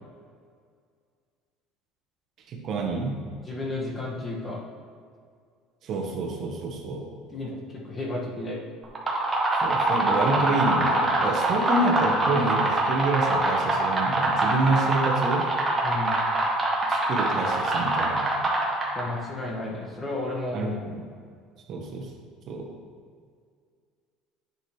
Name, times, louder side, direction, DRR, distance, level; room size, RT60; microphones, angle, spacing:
voice 1, 2.5-3.2 5.8-7.0 9.5-15.5 16.9-18.2 20.5-21.0 21.7-22.1 22.5-22.7, right 2 dB, 50° right, 1 dB, 1.3 m, -28 dB
voice 2, 3.5-4.6 7.3-8.6 15.8-16.2 18.9-20.7, left 2 dB, 20° left, -3 dB, 1.9 m, -32 dB
sound 1, 8.8-19.2, right 2 dB, 25° right, 1.8 m, -24 dB
9.8 x 6.2 x 3.4 m, 2.1 s
supercardioid pair, 110°, 0 cm